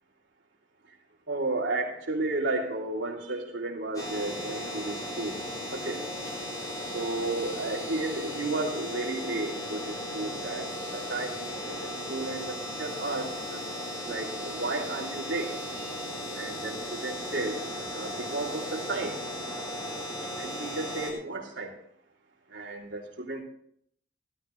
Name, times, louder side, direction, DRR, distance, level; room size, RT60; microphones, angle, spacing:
voice 1, 1.3-5.3 5.7-6.0 6.9-13.6 14.1-15.5 16.4-17.6 17.9-19.2 20.4-21.7 22.5-23.4, right 2 dB, 70° right, -1 dB, 3.2 m, -33 dB
sound 1, 3.9-21.1, equal, 20° left, 4.4 m, -36 dB
17.0 x 13.0 x 3.2 m, 0.69 s
head